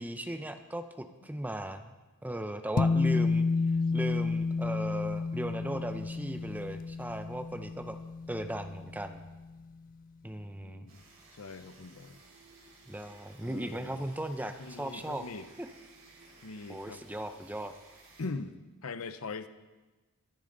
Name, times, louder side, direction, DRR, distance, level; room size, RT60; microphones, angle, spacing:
voice 1, 0.0-1.9 2.2-3.5 3.9-8.0 8.3-9.2 10.2-10.9 12.9-15.2 15.6-15.7 16.7-17.7, right 1 dB, 5° right, 8 dB, 0.6 m, -37 dB
sound 1, 2.8-9.4, left 4 dB, 40° left, 0.3 m, -31 dB
voice 2, 10.6-11.0 11.4-12.2 13.4-14.0 14.6-15.5 16.4-17.1 18.2-19.5, left 3 dB, 70° left, 12 dB, 0.7 m, -42 dB
sound 2, 10.9-18.3, right 3 dB, 60° right, 3.6 m, -57 dB
23.5 x 8.7 x 3.9 m, 1.2 s
head